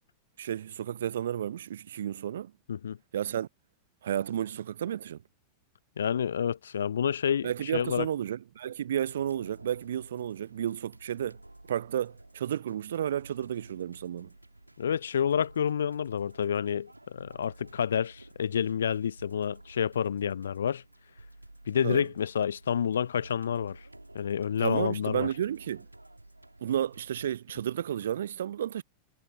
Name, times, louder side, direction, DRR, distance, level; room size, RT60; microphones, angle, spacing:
voice 1, 0.4-2.5 3.1-3.5 4.0-5.2 7.4-11.4 11.7-14.3 21.8-22.0 24.6-25.9 26.6-28.8, right 10 dB, 65° right, 0.3 m, -32 dB
voice 2, 6.0-8.1 14.8-20.8 21.7-23.8 24.1-25.3, left 8 dB, 65° left, 0.4 m, -29 dB
sound 1, 9.0-27.4, right 1 dB, 85° right, 2.7 m, -52 dB
figure-of-eight pair, 90°, 0 cm